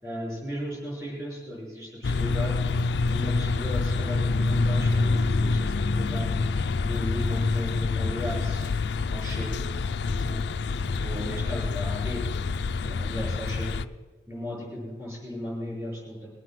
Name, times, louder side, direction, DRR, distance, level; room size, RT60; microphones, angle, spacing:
voice 1, 0.0-2.6 3.1-6.3 6.8-8.7 9.1-9.6 10.0-10.4 11.0-12.2 12.8-13.8 14.3-16.3, left 1 dB, 15° right, -4 dB, 5.5 m, -35 dB
sound 1, 2.0-13.9, left 3 dB, 70° left, 0.4 m, -26 dB
21.5 x 7.7 x 6.1 m, 1.3 s
head